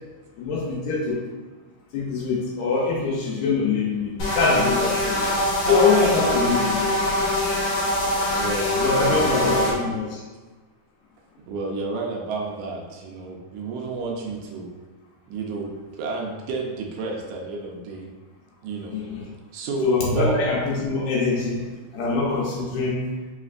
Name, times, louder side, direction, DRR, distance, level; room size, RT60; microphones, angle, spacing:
voice 1, 0.4-1.2 1.9-6.8 8.8-10.2 18.9-19.2 19.8-21.6 21.9-23.1, left 4 dB, 85° left, -4 dB, 2.1 m, -23 dB
sound 1, 4.2-9.7, left 1 dB, 60° left, 1.9 m, -23 dB
voice 2, 5.3-6.6 8.3-9.8 11.5-14.7 15.3-18.1 18.6-19.0 19.5-20.4, right 3 dB, 80° right, 0 dB, 1.9 m, -31 dB
5.0 x 3.1 x 2.4 m, 1.3 s
omnidirectional pair, 3.5 m